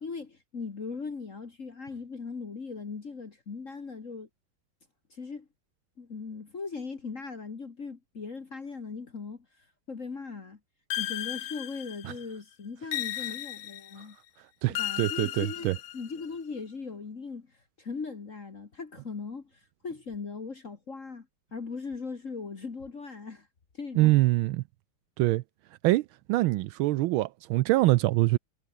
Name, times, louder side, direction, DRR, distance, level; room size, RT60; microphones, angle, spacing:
voice 1, 0.0-4.3 5.1-5.5 6.0-10.6 11.0-14.2 14.7-21.3 21.5-23.5 23.7-24.2, left 4 dB, 40° left, 2.0 m, -39 dB
sound 1, 10.9-12.2 12.9-14.0 14.7-16.3, left 13 dB, 70° left, 1.5 m, -35 dB
voice 2, 14.6-15.7 24.0-24.6 25.2-25.4 25.8-28.4, right 18 dB, 80° right, 1.3 m, -24 dB
omnidirectional pair, 2.3 m